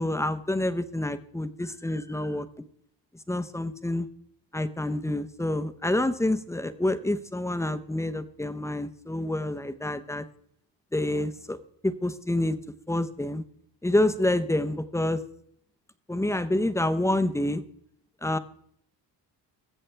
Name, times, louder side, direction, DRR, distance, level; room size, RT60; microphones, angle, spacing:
voice 1, 0.0-2.5 3.3-4.1 4.5-10.2 10.9-11.6 11.8-12.6 12.9-13.4 13.8-15.2 16.1-17.6 18.2-18.4, left 1 dB, 5° left, 10 dB, 0.7 m, -27 dB
21.5 x 7.7 x 3.4 m, 0.68 s
cardioid pair, 110°, 42 cm